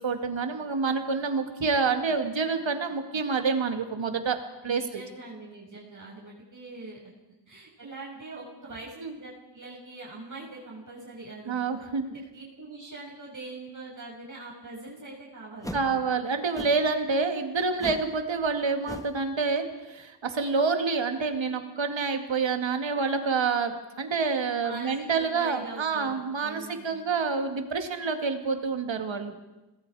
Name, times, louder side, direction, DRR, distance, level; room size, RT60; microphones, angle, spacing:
voice 1, 0.0-5.0 9.0-9.1 11.5-12.1 15.7-29.3, right 4 dB, 85° right, 6 dB, 2.2 m, -28 dB
voice 2, 4.6-7.1 7.5-11.6 12.1-16.0 24.6-26.9, right 2 dB, 45° right, -4 dB, 6.4 m, -43 dB
sound 1, 15.6-15.9 16.5-16.9 17.8-18.1 18.4-18.6 18.9-19.2, left 1 dB, 10° left, 1.6 m, -39 dB
27.0 x 20.0 x 4.9 m, 1.0 s
wide cardioid pair, 75°, 44 cm